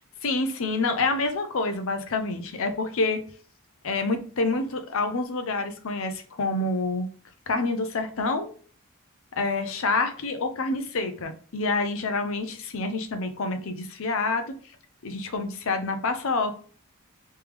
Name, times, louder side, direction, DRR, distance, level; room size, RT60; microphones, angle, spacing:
voice 1, 0.2-3.2 3.8-7.1 7.5-8.5 9.4-14.4 15.0-16.5, left 3 dB, 65° left, 8 dB, 0.6 m, -27 dB
3.4 x 3.2 x 3.4 m, 0.43 s
head